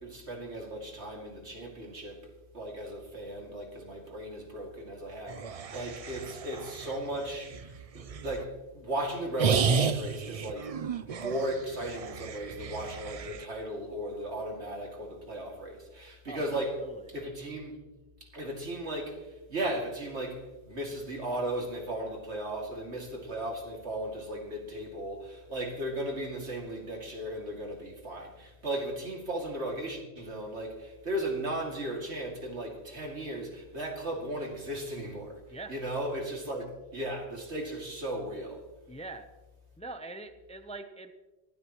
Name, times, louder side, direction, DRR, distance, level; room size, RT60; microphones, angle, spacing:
voice 1, 0.0-2.3 2.5-10.7 11.0-16.8 17.1-17.8 18.3-35.4 35.7-36.7 36.9-38.6, right 1 dB, 75° right, 2.8 m, -36 dB
sound 1, 5.3-8.4 9.4-13.5, right 6 dB, 45° right, 0.5 m, -33 dB
voice 2, 16.3-17.1 35.5-35.7 38.9-39.3 39.8-41.1, right 2 dB, 5° left, 0.6 m, -43 dB
23.5 x 12.0 x 3.1 m
omnidirectional pair, 1.1 m